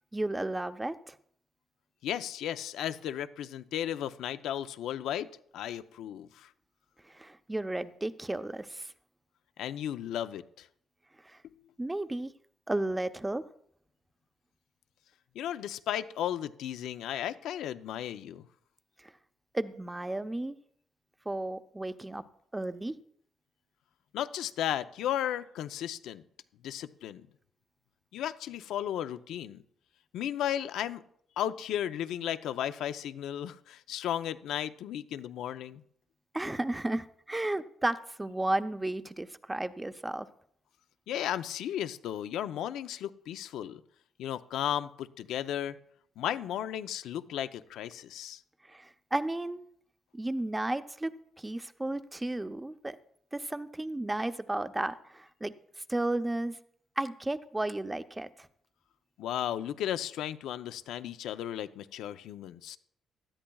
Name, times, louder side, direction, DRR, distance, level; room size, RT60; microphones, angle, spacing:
voice 1, 0.1-1.2 7.0-8.9 11.2-11.4 11.8-12.3 12.7-13.4 19.0-19.1 19.5-20.6 21.3-22.2 22.5-23.0 36.3-40.3 48.7-49.6 50.1-53.0 53.3-56.6 57.0-58.5, right 1 dB, 15° right, 10 dB, 0.6 m, -33 dB
voice 2, 2.0-6.5 9.6-10.7 15.3-18.5 24.1-26.2 26.6-27.3 28.1-29.6 30.1-31.0 31.4-35.8 41.1-43.8 44.2-45.8 46.2-48.4 59.2-62.8, left 10 dB, 85° left, 12 dB, 0.5 m, -35 dB
19.0 x 13.0 x 2.3 m, 0.68 s
cardioid pair, 90°, 0 cm